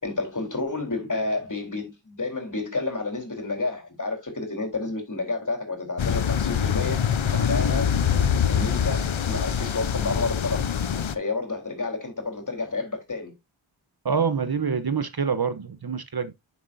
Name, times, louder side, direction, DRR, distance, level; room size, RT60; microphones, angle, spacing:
voice 1, 0.0-8.0 8.5-10.7 11.1-13.3, left 3 dB, 35° left, 4.1 m, -30 dB
sound 1, 6.0-11.2, left 7 dB, 70° left, 0.9 m, -24 dB
voice 2, 14.0-16.3, right 6 dB, 50° right, 0.9 m, -26 dB
10.5 x 7.2 x 2.7 m
wide cardioid pair, 65°, 49 cm